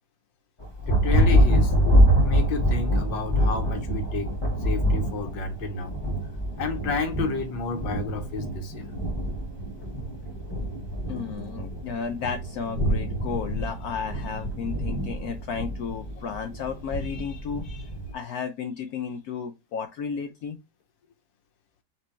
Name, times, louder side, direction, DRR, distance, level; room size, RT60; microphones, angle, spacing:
Thunder, 0.6-18.1, equal, 25° left, 0.5 m, -25 dB
voice 1, 0.9-1.7 2.2-4.3 4.6-6.0 6.6-9.0, left 4 dB, 90° left, 1.6 m, -31 dB
voice 2, 11.1-20.6, left 6 dB, 70° left, 0.9 m, -33 dB
4.3 x 2.5 x 4.1 m
omnidirectional pair, 2.0 m